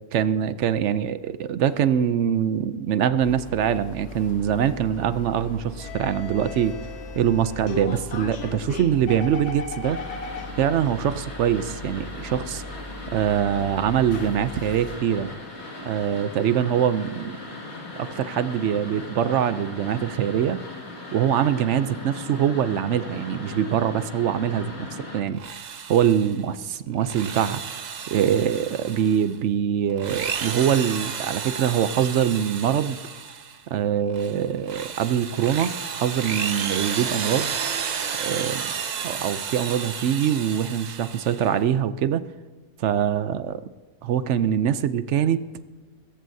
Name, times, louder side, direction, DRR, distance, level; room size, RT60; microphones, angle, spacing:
voice 1, 0.1-6.7 7.1-10.0 10.6-12.6 13.1-15.3 15.8-17.4 18.0-20.6 21.1-24.7 25.0-25.4 25.9-27.6 28.1-33.0 33.7-37.5 38.2-38.6 39.0-42.2 42.8-43.6 44.0-45.4, right 9 dB, 65° right, 13 dB, 0.8 m, -23 dB
sound 1, 3.2-15.0, left 3 dB, 80° left, 1.7 m, -37 dB
sound 2, 9.9-25.2, left 2 dB, 45° left, 2.4 m, -39 dB
Drill, 25.3-26.4 26.9-29.3 29.9-33.6 34.1-41.6, right 7 dB, 85° right, 0.4 m, -32 dB
23.0 x 14.0 x 2.7 m, 1.3 s
omnidirectional pair, 1.6 m